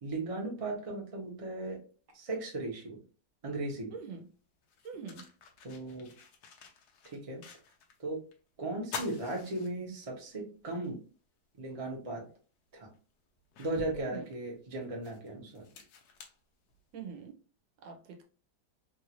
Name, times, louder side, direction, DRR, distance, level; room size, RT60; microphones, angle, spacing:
voice 1, 0.0-1.8 2.1-3.0 3.4-3.9 5.6-6.1 7.0-7.4 8.0-8.2 8.6-11.0 11.6-12.3 12.7-12.9 13.6-15.7, right 2 dB, 25° right, -1 dB, 0.8 m, -37 dB
voice 2, 3.9-4.3 4.8-5.3 13.9-14.2 16.9-17.3 17.8-18.2, right 6 dB, 85° right, 4 dB, 1.5 m, -44 dB
sound 1, 4.0-4.1 4.6-8.0 8.3-8.4 8.8-10.3 10.8-10.9 12.3-12.4 12.9-17.1, left 5 dB, 70° left, 1.2 m, -47 dB
3.6 x 2.5 x 2.9 m, 0.37 s
omnidirectional pair, 1.9 m